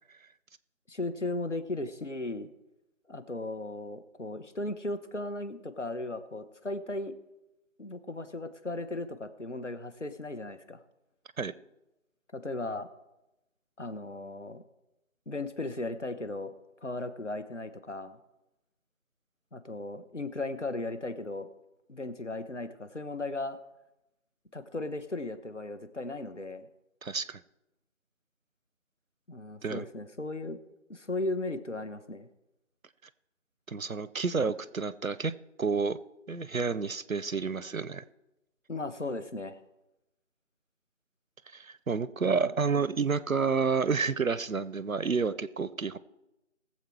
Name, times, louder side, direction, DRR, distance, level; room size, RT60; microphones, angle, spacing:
voice 1, 0.9-2.5 3.1-7.1 7.8-10.8 12.3-12.9 13.8-14.6 15.3-16.5 16.8-18.2 19.5-21.5 21.9-23.6 24.5-26.7 29.3-32.3 38.7-39.6 42.4-42.5, left 2 dB, 60° left, 11 dB, 1.2 m, -36 dB
voice 2, 27.0-27.4 29.6-29.8 33.7-35.3 35.6-36.0 36.3-38.0 41.5-46.0, right 5 dB, 90° right, 17 dB, 0.8 m, -29 dB
19.5 x 7.5 x 4.6 m, 0.93 s
figure-of-eight pair, 175°, 40 cm